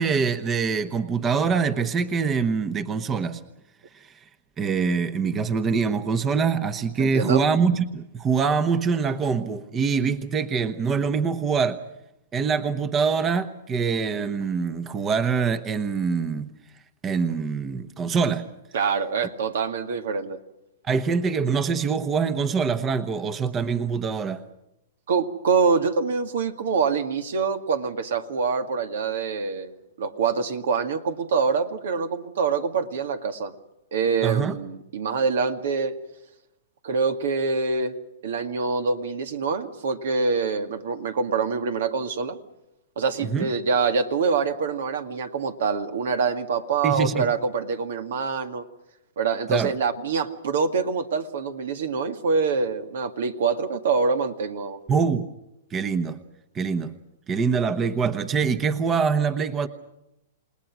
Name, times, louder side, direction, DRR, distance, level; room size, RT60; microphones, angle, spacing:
voice 1, 0.0-3.4 3.9-4.1 4.6-11.8 12.3-16.5 17.0-18.5 20.9-24.4 34.2-34.6 43.2-43.5 46.8-47.3 49.5-49.7 54.9-55.3 55.7-56.2 56.5-56.9 57.3-59.7, right 5 dB, 20° right, 11 dB, 1.1 m, -24 dB
voice 2, 7.0-7.4 18.7-20.4 25.1-33.5 33.9-35.9 36.8-38.0 38.2-42.4 43.0-48.6 49.2-54.8, right 5 dB, 75° right, 8 dB, 2.1 m, -25 dB
29.0 x 19.5 x 6.1 m, 0.89 s
hypercardioid pair, 135°, 0 cm